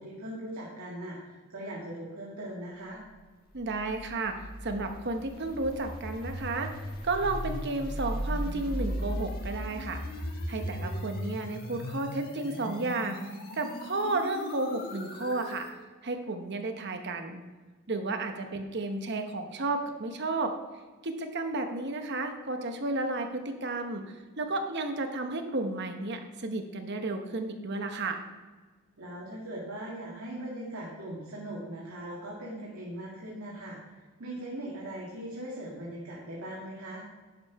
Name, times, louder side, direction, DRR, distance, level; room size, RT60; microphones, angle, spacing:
voice 1, 0.0-3.0 18.3-18.5 29.0-33.9 34.2-37.0, right 1 dB, 80° right, -5 dB, 1.9 m, -40 dB
voice 2, 3.5-6.7 7.0-10.0 10.5-13.2 13.5-15.7 16.0-17.4 17.9-20.5 21.0-28.2, right 2 dB, 50° right, 5 dB, 1.0 m, -32 dB
sound 1, 3.6-15.7, equal, 45° left, 1.4 m, -37 dB
11.0 x 5.6 x 4.7 m, 1.3 s
head